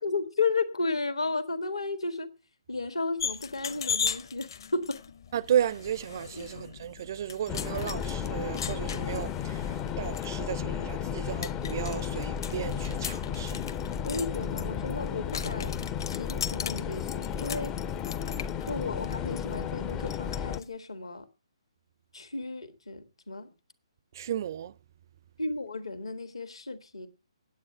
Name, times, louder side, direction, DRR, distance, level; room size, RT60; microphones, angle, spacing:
voice 1, 0.0-2.3 2.7-5.0 6.4-6.5 9.7-10.0 14.0-15.8 16.1-17.7 18.7-21.3 22.1-23.5 25.4-27.1, left 3 dB, 70° left, 1.8 m, -33 dB
sound 1, 3.2-20.6, left 7 dB, 45° left, 1.0 m, -39 dB
voice 2, 5.3-13.7 24.1-24.7, right 10 dB, 40° right, 0.5 m, -33 dB
sound 2, 7.5-20.6, left 8 dB, 15° left, 0.5 m, -33 dB
9.3 x 8.6 x 7.9 m
figure-of-eight pair, 135°, 3 cm